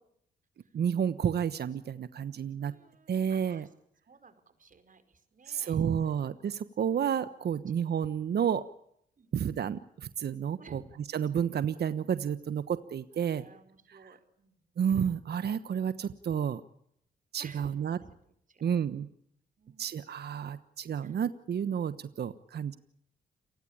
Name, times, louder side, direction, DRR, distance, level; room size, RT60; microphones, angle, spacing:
voice 1, 0.7-2.7 3.1-3.7 5.5-8.6 9.3-10.8 11.1-13.4 14.8-16.6 17.3-18.0 18.6-19.1 19.8-22.8, right 8 dB, 60° right, 13 dB, 1.2 m, -31 dB
voice 2, 2.6-3.7 4.1-5.8 7.5-7.9 9.2-9.3 10.6-11.0 13.2-14.8 17.4-18.1 18.5-18.7 19.0-19.1 19.6-20.4 21.0-21.2, right 4 dB, 45° right, 9 dB, 4.9 m, -56 dB
30.0 x 19.0 x 8.7 m, 0.73 s
supercardioid pair, 55°, 18 cm